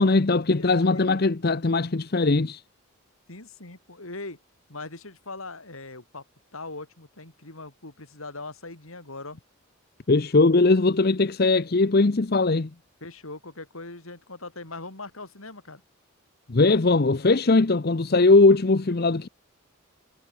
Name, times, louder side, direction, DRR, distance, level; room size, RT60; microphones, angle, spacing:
voice 1, 0.0-2.6 10.1-12.7 16.5-19.3, left 3 dB, 45° left, 0.7 m, -20 dB
voice 2, 0.5-1.0 3.3-4.4 4.7-6.2 6.5-9.4 13.0-15.8, left 2 dB, 75° left, 4.0 m, -40 dB
head